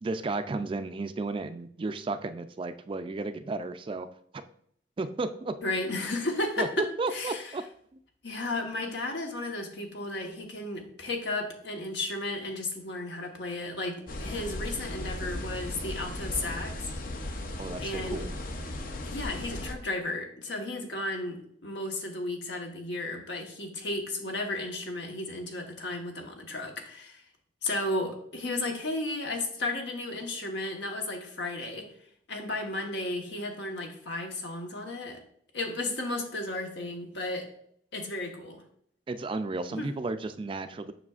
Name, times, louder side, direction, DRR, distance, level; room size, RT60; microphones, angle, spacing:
voice 1, 0.0-4.1 5.0-5.5 6.6-7.6 17.6-18.3 39.1-40.9, right 3 dB, 30° right, 10 dB, 0.3 m, -33 dB
voice 2, 5.6-6.7 7.1-7.5 8.2-16.9 17.8-18.2 19.1-27.2 27.6-31.8 32.3-35.2 35.5-37.5 37.9-38.6 39.7-39.9, left 2 dB, 80° left, 2 dB, 1.1 m, -34 dB
sound 1, 14.1-19.7, left 1 dB, 55° left, 0.6 m, -36 dB
7.2 x 5.8 x 2.4 m, 0.65 s
head